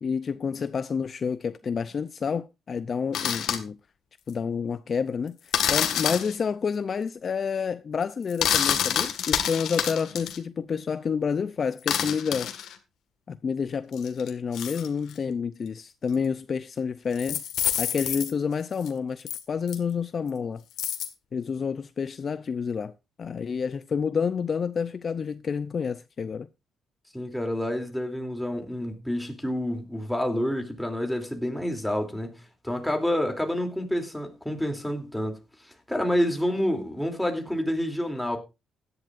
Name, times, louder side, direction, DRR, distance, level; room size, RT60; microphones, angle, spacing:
voice 1, 0.0-3.8 4.3-12.5 13.3-17.4 17.8-20.6 21.3-22.9 23.2-26.5, left 6 dB, 45° left, 0.5 m, -29 dB
sound 1, 3.1-3.6 5.5-6.4 8.3-10.4 11.8-12.8 13.9-15.1 16.1-16.2 17.1-18.3 18.8-18.9 19.3-19.4 19.7-19.8 20.8-21.1, left 9 dB, 75° left, 1.7 m, -27 dB
voice 2, 27.1-35.4 35.9-38.4, equal, 5° left, 3.0 m, -28 dB
16.0 x 11.0 x 2.5 m
cardioid pair, 90°, 0 cm